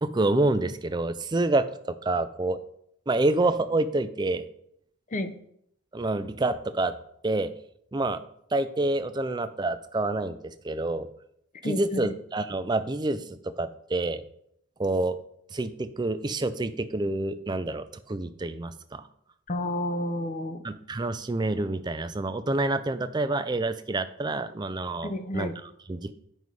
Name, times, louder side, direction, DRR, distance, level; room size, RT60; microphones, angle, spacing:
voice 1, 0.0-2.6 3.1-4.4 5.9-7.0 7.2-7.5 7.9-8.2 8.5-11.1 11.6-14.2 14.8-15.2 15.5-19.1 20.6-26.1, right 2 dB, 20° right, 11 dB, 0.4 m, -28 dB
voice 2, 11.6-12.1 19.5-20.6 25.0-25.5, left 1 dB, 35° left, 9 dB, 0.7 m, -30 dB
9.4 x 5.4 x 4.8 m, 0.72 s
head